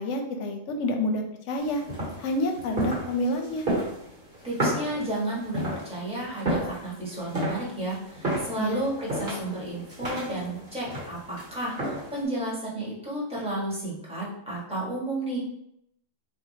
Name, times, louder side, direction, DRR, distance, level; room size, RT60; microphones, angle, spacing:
voice 1, 0.0-1.8 2.2-3.6 8.6-8.9, left 1 dB, 70° left, 4 dB, 0.9 m, -28 dB
sound 1, 1.6-12.2, right 1 dB, 45° right, 1.3 m, -32 dB
voice 2, 4.4-15.4, right 1 dB, 5° right, -7 dB, 1.2 m, -32 dB
4.0 x 2.6 x 2.8 m, 0.75 s
omnidirectional pair, 1.3 m